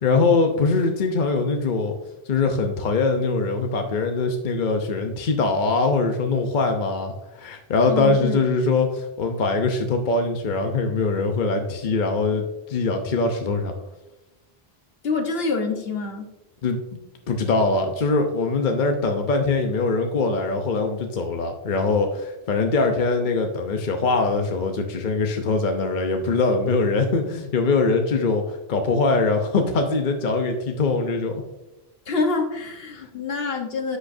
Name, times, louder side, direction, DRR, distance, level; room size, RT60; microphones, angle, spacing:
voice 1, 0.0-1.9 2.3-13.7 16.6-17.0 17.3-31.4, left 3 dB, 50° left, 4 dB, 0.9 m, -22 dB
voice 2, 7.9-8.4 15.0-16.3 32.1-34.0, left 4 dB, 65° left, 4 dB, 1.3 m, -26 dB
10.0 x 6.3 x 2.6 m, 0.97 s
omnidirectional pair, 1.1 m